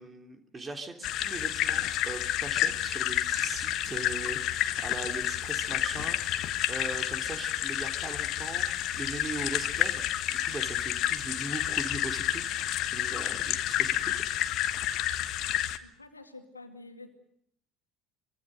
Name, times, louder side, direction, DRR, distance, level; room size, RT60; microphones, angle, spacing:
voice 1, 0.0-10.0 10.3-14.2, right 3 dB, 20° right, 5 dB, 3.3 m, -40 dB
sound 1, 1.0-15.8, left 12 dB, 50° left, 1.4 m, -30 dB
voice 2, 15.8-17.2, left 3 dB, 85° left, 7 dB, 2.3 m, -48 dB
25.0 x 24.0 x 6.6 m, 0.74 s
figure-of-eight pair, 65°, 0 cm